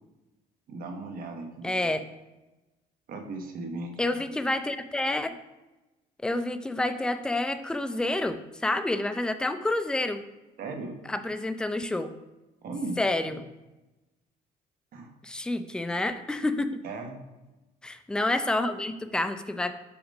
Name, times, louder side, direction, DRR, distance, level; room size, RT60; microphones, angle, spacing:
voice 1, 0.7-1.9 3.1-4.2 10.6-11.0 12.6-13.0 13.3-13.4 14.9-15.1 16.8-17.2, right 3 dB, 60° right, 4 dB, 1.2 m, -37 dB
voice 2, 1.6-2.0 4.0-5.4 6.2-10.2 11.1-12.1 13.0-13.4 15.2-16.7 17.8-19.7, left 2 dB, 5° left, 9 dB, 0.4 m, -28 dB
5.8 x 4.9 x 5.4 m, 1.0 s
cardioid pair, 110°, 17 cm